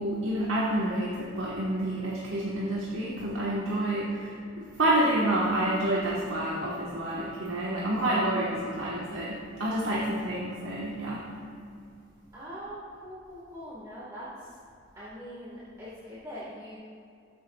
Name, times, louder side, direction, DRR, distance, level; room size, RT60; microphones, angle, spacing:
voice 1, 0.0-11.3, right 1 dB, 75° right, -6 dB, 1.3 m, -29 dB
voice 2, 12.3-14.5 14.9-16.8, equal, 20° right, -9 dB, 1.5 m, -42 dB
13.0 x 8.3 x 2.3 m, 2.5 s
head